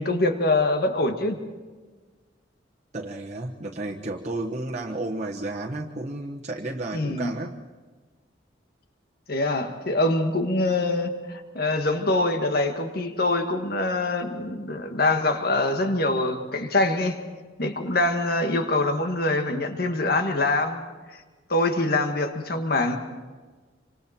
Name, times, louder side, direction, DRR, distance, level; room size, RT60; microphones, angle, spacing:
voice 1, 0.0-1.4 6.9-7.3 9.3-17.2 17.6-20.8 21.5-23.0, left 2 dB, 55° left, 5 dB, 1.9 m, -24 dB
voice 2, 2.9-7.6, right 2 dB, 40° right, -1 dB, 1.2 m, -32 dB
27.0 x 25.0 x 4.4 m, 1.4 s
head